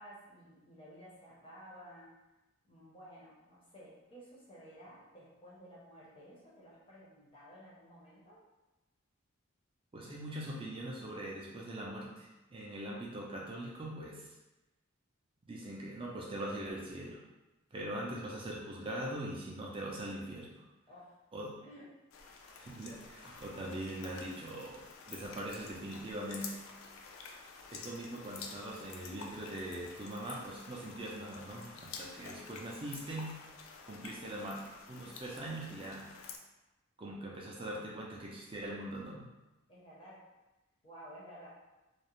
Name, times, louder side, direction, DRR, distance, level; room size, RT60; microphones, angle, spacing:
voice 1, 0.0-2.1 2.6-8.4 20.9-21.2 21.6-21.9 39.7-40.2 40.8-41.5, equal, 25° left, -7 dB, 0.5 m, -54 dB
voice 2, 9.9-14.3 15.5-17.2 17.7-20.5 21.3-21.6 22.6-26.6 27.7-33.3 33.9-34.6 34.9-36.1 37.0-39.3, right 1 dB, 25° right, -4 dB, 0.4 m, -42 dB
sound 1, 22.1-36.4, left 5 dB, 70° left, 0.3 m, -50 dB
2.4 x 2.0 x 2.9 m, 1.0 s
head